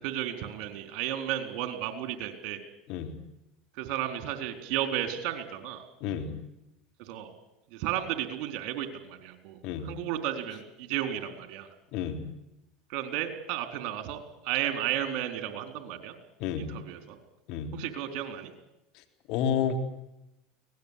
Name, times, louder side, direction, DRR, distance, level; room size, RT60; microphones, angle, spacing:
voice 1, 0.0-2.6 3.8-5.8 7.0-7.3 7.7-9.6 9.8-11.7 12.9-16.1 16.5-17.2 17.7-18.5, right 11 dB, 60° right, 7 dB, 4.3 m, -33 dB
voice 2, 6.0-6.3 9.6-9.9 11.9-12.2 16.4-16.7 17.5-17.7 19.3-19.8, left 8 dB, 65° left, 5 dB, 3.7 m, -30 dB
23.5 x 19.0 x 8.6 m, 0.89 s
hypercardioid pair, 90°, 0 cm